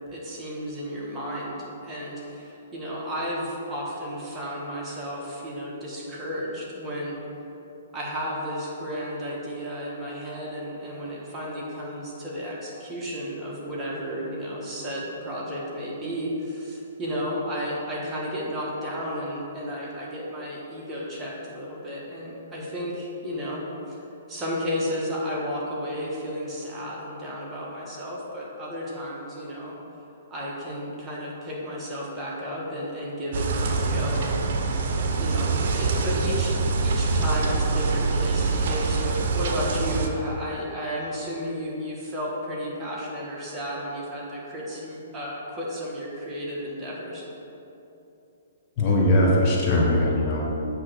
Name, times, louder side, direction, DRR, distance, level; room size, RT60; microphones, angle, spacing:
voice 1, 0.1-1.6 1.8-7.1 7.9-24.0 24.3-29.8 30.3-34.5 35.2-36.5 36.8-47.2, equal, 15° right, -6 dB, 1.4 m, -33 dB
sound 1, 33.3-40.1, right 3 dB, 55° right, 0.7 m, -25 dB
voice 2, 48.8-50.4, left 1 dB, 30° left, -4 dB, 1.2 m, -20 dB
8.5 x 3.1 x 6.3 m, 2.9 s
hypercardioid pair, 150°, 0 cm